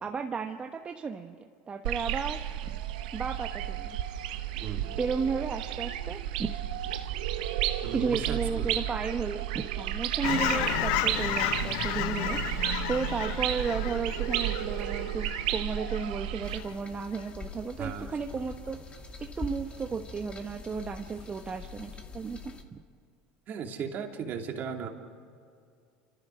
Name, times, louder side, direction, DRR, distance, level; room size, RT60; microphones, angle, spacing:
voice 1, 0.0-2.8 3.1-4.0 5.0-6.5 7.9-18.8 19.2-22.8, right 5 dB, 25° right, 5 dB, 1.1 m, -34 dB
sound 1, 1.8-16.6, right 12 dB, 80° right, 1.0 m, -32 dB
voice 2, 7.8-8.8 17.8-18.1 23.5-24.9, right 7 dB, 45° right, 3 dB, 2.7 m, -36 dB
Fowl / Chirp tweet, 10.2-16.1 16.5-16.7, left 12 dB, 70° left, 0.9 m, -32 dB
sound 2, 16.4-22.6, left 3 dB, 25° left, 2.2 m, -44 dB
29.5 x 14.5 x 6.4 m, 2.3 s
hypercardioid pair, 90°, 4 cm